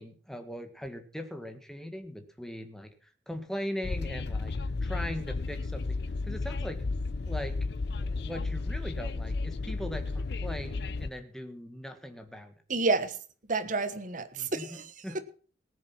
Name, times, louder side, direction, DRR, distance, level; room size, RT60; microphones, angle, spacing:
voice 1, 0.0-2.9 3.3-4.5 4.8-6.8 7.3-7.6 7.9-12.5 14.3-15.2, equal, 5° left, 1.7 m, -40 dB
Train, 3.8-11.1, left 3 dB, 65° left, 0.6 m, -33 dB
voice 2, 12.7-13.2 13.5-15.2, right 3 dB, 45° right, 1.3 m, -30 dB
18.5 x 7.4 x 5.9 m
head